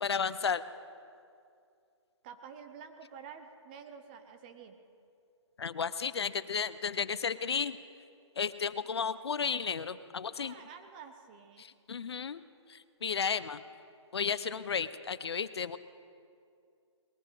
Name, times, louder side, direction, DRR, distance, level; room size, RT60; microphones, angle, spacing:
voice 1, 0.0-0.6 5.6-7.8 8.4-10.5 11.6-12.4 12.7-13.6 14.1-15.8, left 6 dB, 60° left, 15 dB, 0.6 m, -33 dB
voice 2, 2.2-4.8 10.4-11.7, right 7 dB, 20° right, 7 dB, 0.6 m, -49 dB
20.5 x 14.0 x 3.9 m, 2.4 s
figure-of-eight pair, 150°, 16 cm